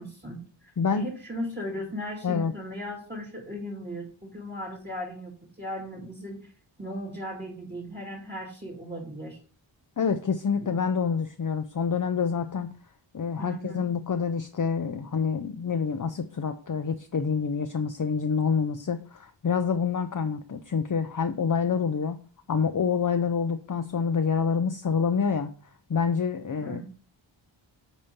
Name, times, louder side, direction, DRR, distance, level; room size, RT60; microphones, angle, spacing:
voice 1, 0.0-6.5 6.8-9.4 10.6-10.8 13.4-13.8 26.6-26.9, equal, 20° right, -1 dB, 2.3 m, -37 dB
voice 2, 0.8-1.1 2.2-2.5 10.0-12.8 13.1-22.2 22.5-25.5 25.9-26.9, left 6 dB, 40° left, 7 dB, 0.6 m, -27 dB
8.7 x 4.2 x 5.4 m, 0.41 s
wide cardioid pair, 80°, 49 cm